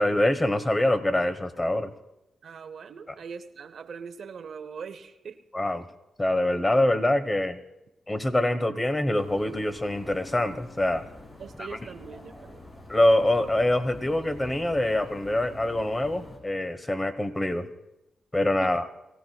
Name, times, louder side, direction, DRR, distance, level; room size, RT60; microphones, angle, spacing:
voice 1, 0.0-1.9 5.5-5.9 6.2-7.6 8.1-11.1 12.9-17.7 18.3-18.9, left 1 dB, 20° left, 11 dB, 1.2 m, -24 dB
voice 2, 2.4-5.4 11.4-12.7 18.6-18.7, right 6 dB, 70° right, 9 dB, 0.7 m, -41 dB
sound 1, 9.2-16.4, left 1 dB, 40° left, 5.7 m, -46 dB
23.0 x 16.0 x 2.3 m, 0.92 s
cardioid pair, 65°, 0 cm